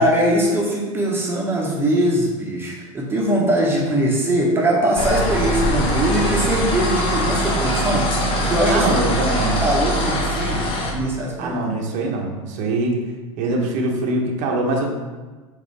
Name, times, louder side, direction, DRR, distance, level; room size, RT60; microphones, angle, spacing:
voice 1, 0.0-8.1 8.4-10.7 10.9-11.6, right 1 dB, 15° right, -3 dB, 1.0 m, -21 dB
sound 1, 5.0-10.9, equal, 30° left, 0.8 m, -22 dB
voice 2, 8.7-9.6 11.4-13.0 13.4-14.9, right 2 dB, 45° right, 0 dB, 0.8 m, -23 dB
3.9 x 3.2 x 3.3 m, 1.3 s
hypercardioid pair, 95°, 17 cm